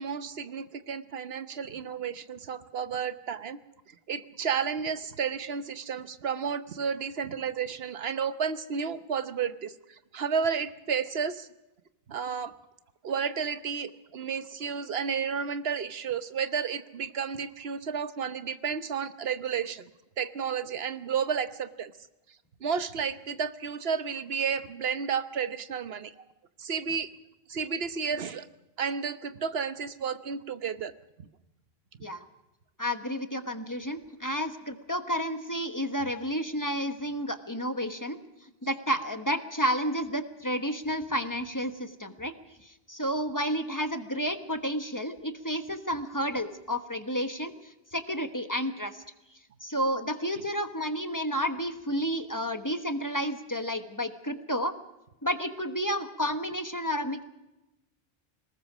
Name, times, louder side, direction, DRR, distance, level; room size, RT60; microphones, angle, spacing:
voice 1, 0.0-3.6 3.9-11.5 12.1-12.5 13.0-19.8 20.2-21.9 22.6-26.3 26.6-27.1 27.5-28.5 28.8-30.9 31.2-31.3, right 6 dB, 65° right, 12 dB, 1.2 m, -32 dB
voice 2, 32.8-38.2 38.6-42.3 42.6-47.5 47.9-49.0 49.6-54.7 55.2-57.2, equal, 20° left, 8 dB, 1.1 m, -31 dB
22.0 x 19.5 x 6.1 m, 0.97 s
omnidirectional pair, 1.1 m